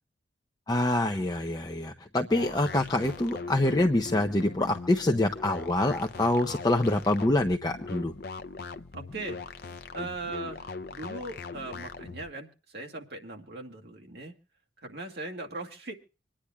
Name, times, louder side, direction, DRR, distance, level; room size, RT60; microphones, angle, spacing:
voice 1, 0.7-8.1, left 1 dB, 20° left, 4 dB, 0.8 m, -26 dB
sound 1, 2.3-12.3, left 4 dB, 55° left, 0.7 m, -41 dB
voice 2, 8.9-14.3 14.8-15.9, right 2 dB, 60° right, 2 dB, 2.1 m, -40 dB
26.5 x 10.0 x 2.3 m, 0.33 s
head